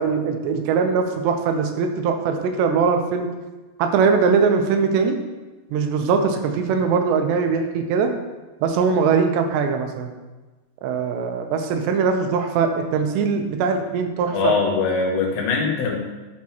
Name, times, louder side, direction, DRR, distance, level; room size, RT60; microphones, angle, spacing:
voice 1, 0.0-3.3 3.8-5.2 5.7-8.1 8.6-10.1 10.8-14.5, right 5 dB, 80° right, 6 dB, 2.9 m, -21 dB
voice 2, 14.3-16.0, left 4 dB, 80° left, -1 dB, 3.4 m, -21 dB
12.5 x 5.9 x 2.9 m, 1.2 s
omnidirectional pair, 5.0 m